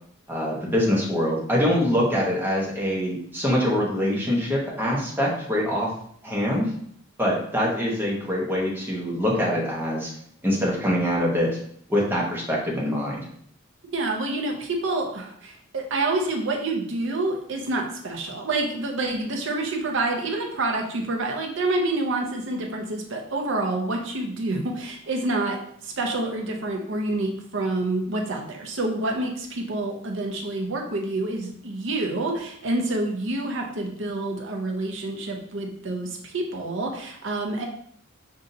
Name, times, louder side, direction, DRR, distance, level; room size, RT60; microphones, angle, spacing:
voice 1, 0.3-5.9 6.2-6.7 7.2-10.1 10.4-11.5 11.9-13.2, equal, 10° right, -4 dB, 0.9 m, -24 dB
voice 2, 13.9-37.7, right 2 dB, 65° right, 2 dB, 0.7 m, -28 dB
5.5 x 2.6 x 2.6 m, 0.65 s
head